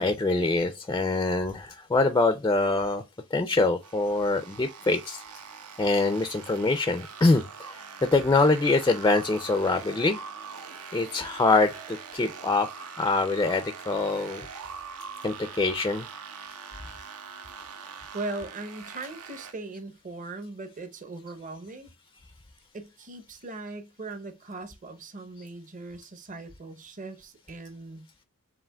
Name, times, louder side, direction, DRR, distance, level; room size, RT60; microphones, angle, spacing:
voice 1, 0.0-3.0 3.3-5.2 5.8-10.2 10.9-14.5 15.2-16.1, left 3 dB, 15° left, 0.3 m, -24 dB
sound 1, 3.8-19.5, right 6 dB, 80° right, 0.8 m, -43 dB
voice 2, 18.1-21.9 22.7-28.1, right 2 dB, 35° right, 0.7 m, -39 dB
7.3 x 2.8 x 2.2 m
head